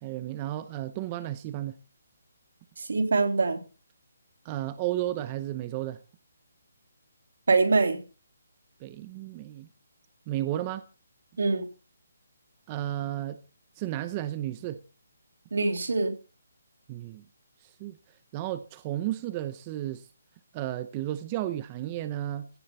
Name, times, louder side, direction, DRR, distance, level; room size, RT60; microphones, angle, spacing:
voice 1, 0.0-1.8 4.4-6.0 8.8-9.7 10.3-10.8 12.7-13.4 13.8-14.8 16.9-17.2 17.6-18.0 18.3-20.1 20.5-22.5, right 14 dB, 20° right, 0.6 m, -33 dB
voice 2, 2.8-3.6 7.5-8.0 11.4-11.6 15.5-16.1, right 3 dB, 70° right, 3.1 m, -24 dB
16.5 x 7.6 x 7.1 m
hypercardioid pair, 170°, 0 cm